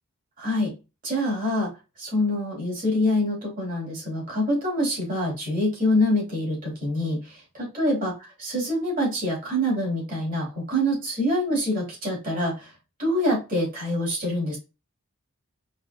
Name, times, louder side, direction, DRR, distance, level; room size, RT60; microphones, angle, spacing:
voice 1, 0.4-0.8 1.0-1.7 2.0-8.1 8.4-12.7 13.0-14.6, left 1 dB, 40° right, -2 dB, 2.6 m, -25 dB
4.7 x 3.5 x 2.3 m, 0.27 s
head